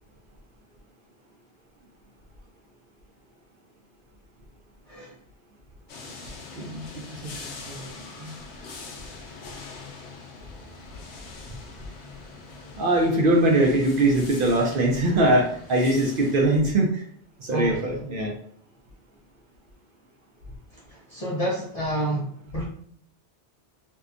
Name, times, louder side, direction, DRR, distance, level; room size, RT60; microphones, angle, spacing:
sound 1, 5.9-16.4, left 4 dB, 75° left, 0.9 m, -43 dB
voice 1, 6.6-8.3 12.8-17.0 17.4-18.3, right 1 dB, 60° right, 0 dB, 0.6 m, -22 dB
voice 2, 17.5-17.9 20.7-22.6, right 1 dB, 50° left, -4 dB, 0.5 m, -29 dB
2.7 x 2.2 x 2.4 m, 0.62 s
omnidirectional pair, 1.2 m